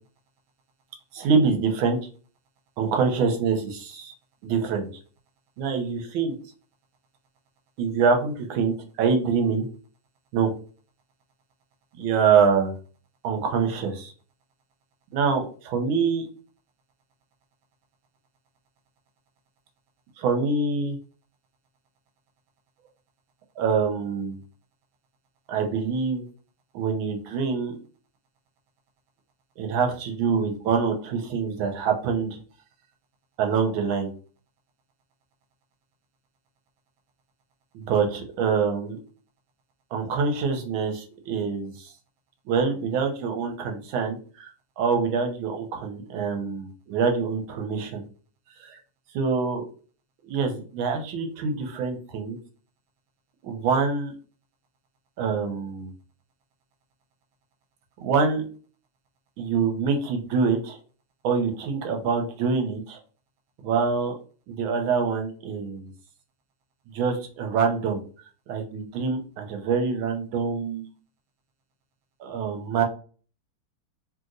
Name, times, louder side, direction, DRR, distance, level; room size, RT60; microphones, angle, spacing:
voice 1, 1.1-2.0 2.8-4.1 4.4-4.9 5.6-6.3 7.8-9.7 10.3-10.5 12.0-12.7 13.2-14.1 15.1-16.3 20.2-21.0 23.6-24.4 25.5-26.2 26.7-27.7 29.6-32.4 33.4-34.1 37.7-39.0 39.9-41.9 42.5-44.5 44.8-48.1 48.6-48.8 49.1-49.6 50.3-52.4 53.4-54.1 55.2-55.9 58.0-58.4 59.4-60.8 61.2-63.0 63.6-64.1 64.5-65.9 66.9-68.0 68.5-70.9 72.2-72.9, right 5 dB, 85° right, 3 dB, 1.4 m, -25 dB
3.1 x 2.8 x 2.5 m, 0.39 s
omnidirectional pair, 2.2 m